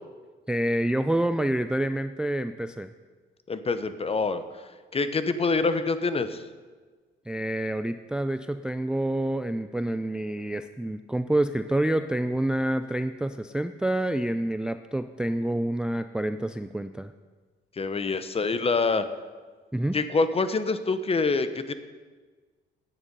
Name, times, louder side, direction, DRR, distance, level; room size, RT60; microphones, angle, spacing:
voice 1, 0.5-2.9 7.3-17.1 19.7-20.0, right 1 dB, 5° right, 10 dB, 0.3 m, -27 dB
voice 2, 3.5-4.4 4.9-6.4 17.8-19.1 19.9-21.7, left 3 dB, 30° left, 11 dB, 0.8 m, -26 dB
9.9 x 8.8 x 5.3 m, 1.4 s
cardioid pair, 90°, 20 cm